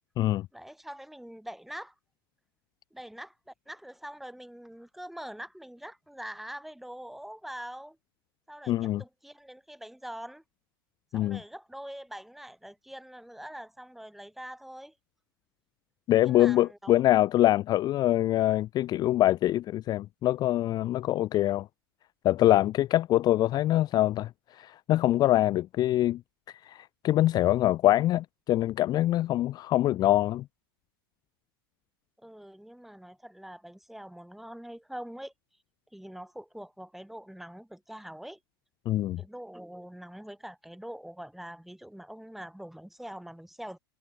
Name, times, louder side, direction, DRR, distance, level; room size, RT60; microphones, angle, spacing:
voice 1, 0.5-1.9 2.9-8.0 8.5-10.4 11.1-14.9 16.2-17.0 32.2-35.3 35.9-38.4 39.2-43.8, equal, ahead, 1.9 m, -44 dB
voice 2, 8.7-9.0 11.1-11.4 16.1-21.7 22.2-26.2 26.6-30.4 38.9-39.2, left 14 dB, 35° left, 0.4 m, -24 dB
hypercardioid pair, 110°, 13 cm